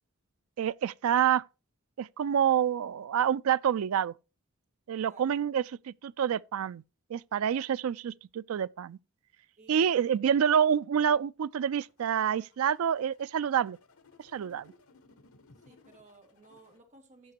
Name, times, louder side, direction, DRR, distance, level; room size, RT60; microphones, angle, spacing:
voice 1, 0.6-1.4 2.0-4.1 4.9-6.8 7.1-9.0 9.7-13.8 14.3-14.7, right 8 dB, 85° right, 0.4 m, -27 dB
voice 2, 9.6-10.1 15.6-17.3, right 3 dB, 35° right, 2.2 m, -57 dB
sound 1, 11.5-16.8, left 3 dB, 90° left, 1.2 m, -61 dB
14.5 x 6.6 x 2.9 m
head